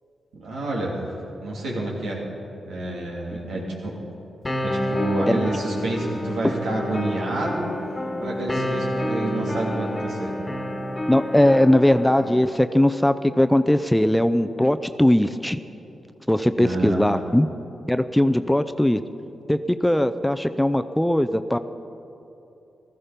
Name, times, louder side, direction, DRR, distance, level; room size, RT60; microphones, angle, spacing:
voice 1, 0.3-2.2 2.6-4.0 4.6-7.7 8.2-10.3 16.6-17.3, right 1 dB, 85° right, -3 dB, 3.0 m, -29 dB
sound 1, 4.5-12.5, equal, 25° left, 1.5 m, -29 dB
voice 2, 11.1-15.6 16.3-17.5 17.9-19.0 19.5-21.6, left 1 dB, 5° left, 10 dB, 0.6 m, -19 dB
16.0 x 13.5 x 5.2 m, 2.9 s
supercardioid pair, 50°, 0 cm